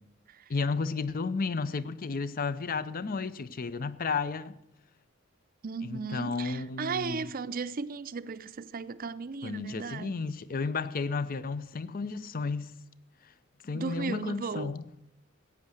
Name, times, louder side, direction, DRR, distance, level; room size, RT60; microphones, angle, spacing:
voice 1, 0.5-4.6 5.8-7.3 9.4-12.7 13.6-14.8, left 4 dB, 45° left, 0.6 m, -32 dB
voice 2, 5.6-10.2 13.7-14.8, right 5 dB, 45° right, 0.5 m, -36 dB
15.0 x 9.1 x 6.4 m
head